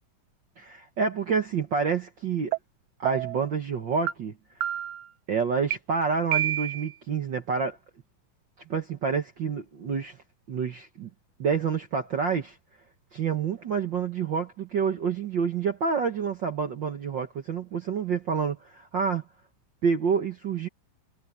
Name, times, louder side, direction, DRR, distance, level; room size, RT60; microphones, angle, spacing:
voice 1, 0.6-2.5 3.0-4.3 5.3-7.8 8.7-10.2 10.5-11.1 11.4-12.6 13.1-19.2 19.8-20.7, right 6 dB, 60° right, 1.2 m, -28 dB
sound 1, 2.5-2.6 3.1-3.4 4.1-4.2 4.6-5.1 5.7-5.8 6.3-6.9, right 12 dB, 80° right, 2.5 m, -28 dB
omnidirectional pair, 3.8 m